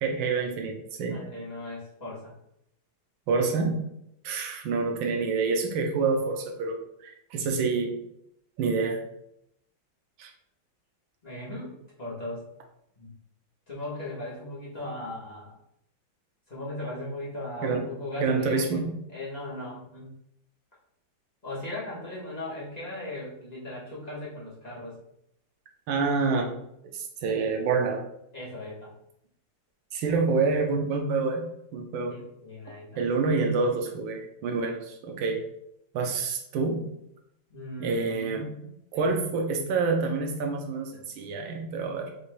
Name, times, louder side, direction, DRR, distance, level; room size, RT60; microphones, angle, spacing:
voice 1, 0.0-1.2 3.3-3.8 4.2-8.0 8.6-9.0 10.2-10.3 17.6-17.9 18.2-18.9 25.9-26.5 26.9-28.0 29.9-32.2 33.0-35.4 35.9-36.9 37.8-38.5 38.9-42.1, right 4 dB, 75° right, 2 dB, 1.5 m, -27 dB
voice 2, 1.1-2.3 11.2-12.4 13.0-13.1 13.7-15.5 16.5-20.1 21.4-25.0 28.3-28.9 32.1-33.1 37.5-39.1, left 1 dB, 25° left, -7 dB, 1.1 m, -38 dB
6.7 x 3.3 x 2.2 m, 0.77 s
omnidirectional pair, 2.3 m